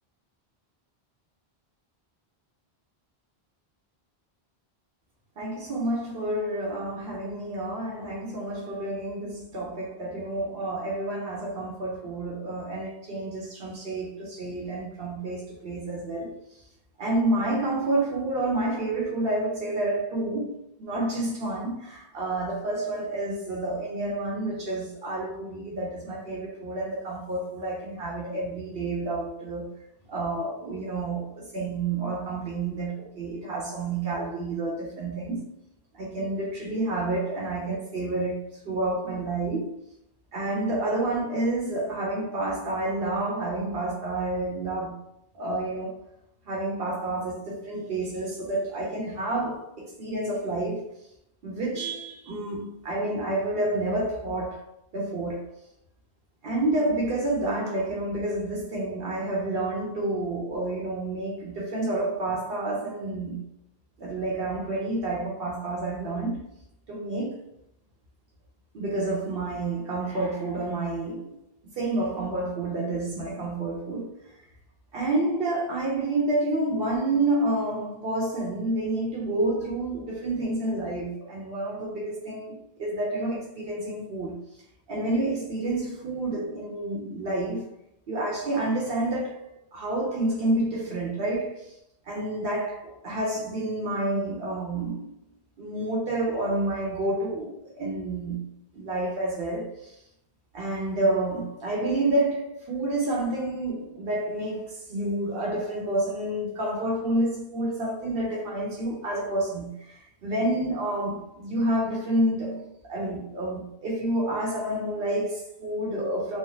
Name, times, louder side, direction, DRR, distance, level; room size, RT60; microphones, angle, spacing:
voice 1, 5.4-16.4 17.0-29.7 30.1-35.4 35.9-38.4 38.6-39.7 40.3-44.9 45.3-45.9 46.5-50.9 51.4-54.7 54.9-55.5 56.4-63.4 64.0-66.4 66.9-67.4 68.7-71.4 71.8-74.1 74.9-84.3 84.9-87.7 88.1-91.7 92.1-95.0 95.6-98.4 98.7-100.0 100.5-116.4, right 2 dB, 70° right, 0.8 m, -29 dB
3.2 x 2.0 x 2.7 m
omnidirectional pair, 1.0 m